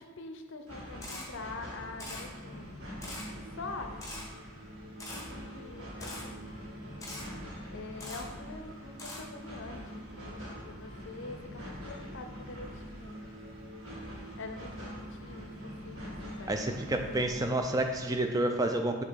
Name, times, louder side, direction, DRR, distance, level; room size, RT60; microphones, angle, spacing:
voice 1, 0.0-2.7 3.6-4.0 5.3-6.5 7.7-13.2 14.4-17.4, left 3 dB, 55° left, 6 dB, 0.6 m, -45 dB
sound 1, 0.7-18.2, equal, 60° right, 1.7 m, -45 dB
Camera, 1.0-1.2 2.0-2.2 3.0-3.2 4.0-4.2 5.0-5.2 6.0-6.2 7.0-7.2 8.0-8.2 9.0-9.2, left 2 dB, 15° left, 0.9 m, -42 dB
sound 2, 2.6-17.4, right 1 dB, 80° right, 0.9 m, -49 dB
voice 2, 16.5-19.0, right 1 dB, 15° right, 5 dB, 0.4 m, -29 dB
6.4 x 2.8 x 5.2 m, 1.4 s
head